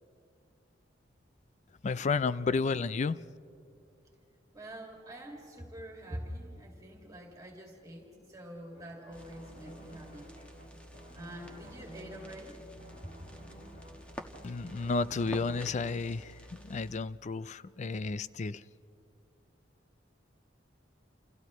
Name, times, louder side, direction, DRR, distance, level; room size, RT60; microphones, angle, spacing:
voice 1, 1.8-3.2 14.4-16.4 16.6-18.6, left 4 dB, 40° left, 0.4 m, -32 dB
voice 2, 4.5-10.3 11.1-12.6, equal, 20° right, 2.2 m, -46 dB
sound 1, 8.7-15.9, right 1 dB, 60° left, 6.6 m, -51 dB
sound 2, 9.1-17.0, equal, 5° left, 1.3 m, -49 dB
29.5 x 29.0 x 3.1 m
head